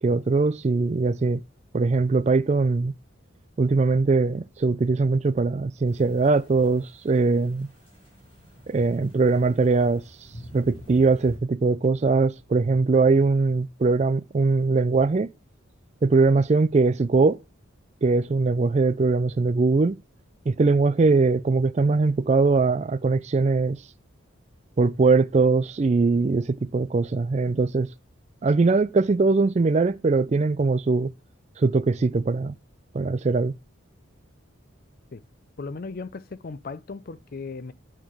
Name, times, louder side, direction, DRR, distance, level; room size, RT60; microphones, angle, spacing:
voice 1, 0.0-1.4 1.7-2.9 3.6-7.7 8.7-10.0 10.5-15.3 16.0-17.4 18.0-20.0 20.5-23.8 24.8-27.9 28.4-31.1 31.6-32.5 32.9-33.5, right 3 dB, 35° right, 0.4 m, -21 dB
sound 1, 5.9-11.4, equal, 25° left, 4.6 m, -48 dB
voice 2, 35.6-37.7, left 4 dB, 45° left, 0.5 m, -36 dB
8.9 x 3.7 x 6.3 m
head